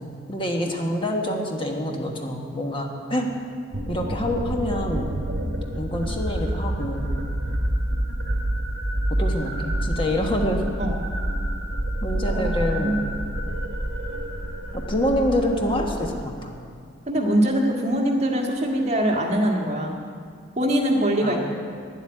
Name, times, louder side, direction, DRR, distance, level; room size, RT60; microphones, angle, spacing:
voice 1, 0.0-3.3 3.9-5.1 5.7-7.1 9.1-10.6 12.0-13.0 14.7-16.5 21.2-21.4, left 1 dB, 25° left, 1 dB, 1.2 m, -26 dB
sound 1, 3.7-16.2, right 1 dB, 65° right, 1.3 m, -28 dB
voice 2, 12.3-13.1 17.1-20.0 20.5-21.4, right 1 dB, 35° right, 0 dB, 1.7 m, -23 dB
10.5 x 8.0 x 9.8 m, 2.2 s
head